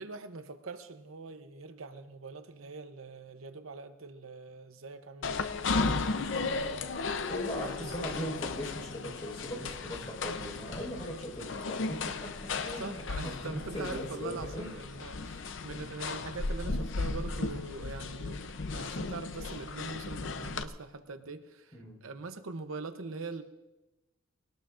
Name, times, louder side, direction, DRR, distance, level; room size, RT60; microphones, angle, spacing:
voice 1, 0.0-5.4 5.7-6.8 7.2-8.1 9.6-9.7 12.8-23.4, right 3 dB, 80° right, 9 dB, 0.8 m, -43 dB
sound 1, 5.2-20.6, left 3 dB, 65° left, 0.7 m, -35 dB
voice 2, 7.3-14.8 21.7-22.0, equal, 25° left, -1 dB, 4.9 m, -39 dB
21.0 x 18.0 x 2.5 m, 1.1 s
head